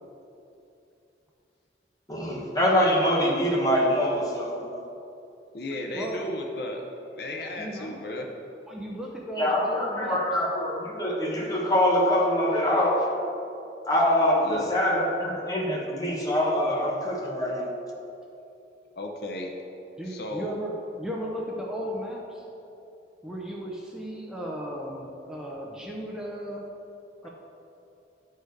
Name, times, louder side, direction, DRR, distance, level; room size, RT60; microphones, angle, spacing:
voice 1, 2.1-4.8 9.4-13.1 13.9-17.7, left 1 dB, 20° left, -3 dB, 1.1 m, -24 dB
voice 2, 5.5-6.8 7.1-8.3 14.4-14.7 19.0-19.5 20.0-20.5, left 1 dB, 55° left, 2 dB, 0.7 m, -34 dB
voice 3, 7.6-7.9 8.7-10.2 20.0-22.4 23.2-26.6 27.2-27.3, equal, 5° right, -3 dB, 0.6 m, -35 dB
10.0 x 4.7 x 4.7 m, 2.8 s
head